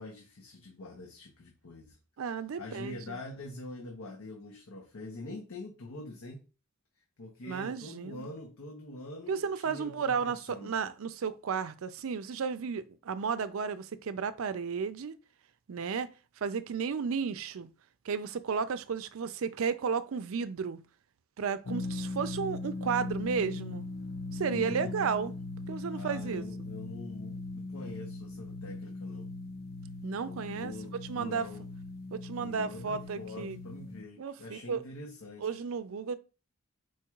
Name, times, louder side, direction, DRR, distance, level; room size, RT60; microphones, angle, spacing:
voice 1, 0.0-2.0 2.6-6.4 7.2-10.7 24.5-25.0 25.9-29.3 30.2-31.7 32.4-35.6, left 2 dB, 90° left, 0.8 m, -45 dB
voice 2, 2.2-3.2 7.4-8.3 9.3-15.1 15.7-16.1 16.4-17.7 18.0-20.8 21.4-23.9 24.3-25.3 25.7-26.4 30.0-30.7 31.1-31.5 32.1-33.6 34.2-34.8 35.4-36.2, right 6 dB, 70° right, 0.4 m, -33 dB
sound 1, 21.7-34.0, left 2 dB, 45° left, 0.4 m, -39 dB
4.5 x 2.4 x 4.5 m
head